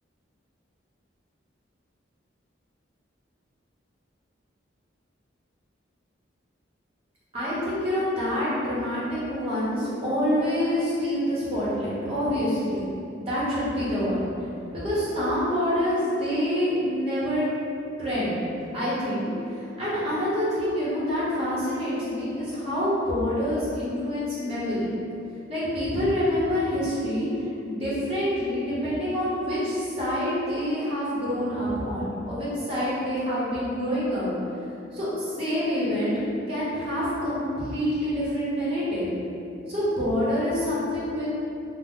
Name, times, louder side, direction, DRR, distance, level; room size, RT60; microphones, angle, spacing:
voice 1, 7.3-12.8 13.1-14.2 14.7-17.5 18.0-18.4 18.7-24.9 25.5-27.3 27.6-34.3 34.9-36.1 36.5-39.1 39.7-41.3, equal, 30° right, -10 dB, 0.9 m, -26 dB
2.9 x 2.0 x 3.5 m, 2.6 s
head